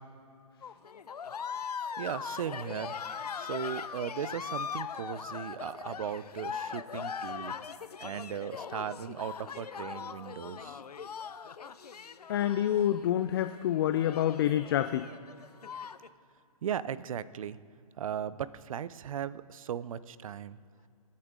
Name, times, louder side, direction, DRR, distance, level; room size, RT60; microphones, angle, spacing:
sound 1, 0.6-16.1, left 6 dB, 80° left, 0.7 m, -40 dB
voice 1, 2.0-2.9 3.4-7.5 8.0-10.8 16.6-17.6 18.0-20.6, right 9 dB, 60° right, 16 dB, 0.6 m, -37 dB
voice 2, 12.3-15.1, left 11 dB, 40° left, 10 dB, 0.4 m, -27 dB
20.5 x 8.5 x 3.8 m, 2.3 s
hypercardioid pair, 140°, 20 cm